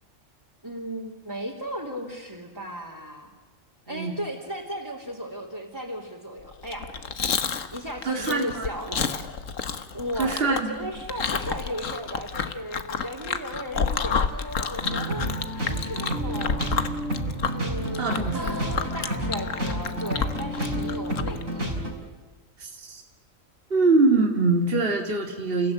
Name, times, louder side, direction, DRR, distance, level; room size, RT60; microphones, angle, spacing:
voice 1, 0.6-3.3 3.9-6.9 7.2-7.4 7.7-9.1 9.9-16.6 17.5-21.7, equal, 15° right, -4 dB, 3.2 m, -36 dB
Chewing mastication, 6.6-21.4, left 6 dB, 70° left, 1.6 m, -30 dB
voice 2, 8.0-8.7 10.2-10.7 18.0-18.5 22.6-23.0 23.7-25.7, right 3 dB, 45° right, 3 dB, 2.5 m, -23 dB
sound 1, 14.8-21.9, equal, 75° right, 5.4 m, -30 dB
29.5 x 16.5 x 9.4 m, 1.3 s
omnidirectional pair, 1.4 m